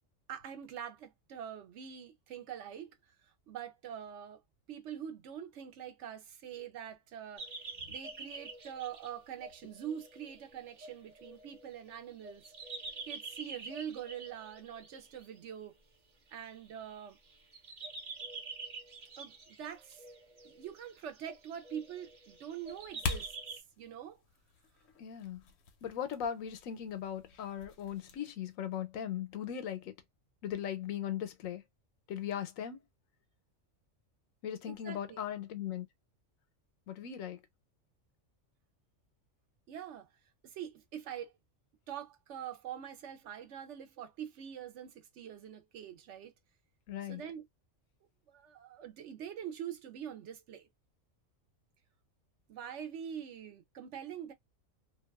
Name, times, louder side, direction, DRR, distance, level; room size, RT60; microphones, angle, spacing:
voice 1, 0.3-4.4 4.7-7.5 7.9-12.4 13.0-15.8 16.3-17.2 19.2-20.0 20.4-24.2 34.7-35.2 39.7-40.1 40.4-41.3 41.9-46.3 47.0-47.5 48.3-50.7 52.5-54.3, right 9 dB, 70° right, 0.8 m, -44 dB
sound 1, 7.4-15.3 16.3-17.0 17.3-23.6, right 3 dB, 40° right, 0.8 m, -47 dB
sound 2, 22.7-28.2, left 5 dB, 65° left, 0.8 m, -44 dB
voice 2, 25.0-25.4 25.8-29.9 30.4-31.6 32.1-32.8 34.4-35.9 36.9-37.4 46.9-47.2, left 9 dB, 90° left, 1.0 m, -38 dB
2.6 x 2.3 x 2.2 m
omnidirectional pair, 1.4 m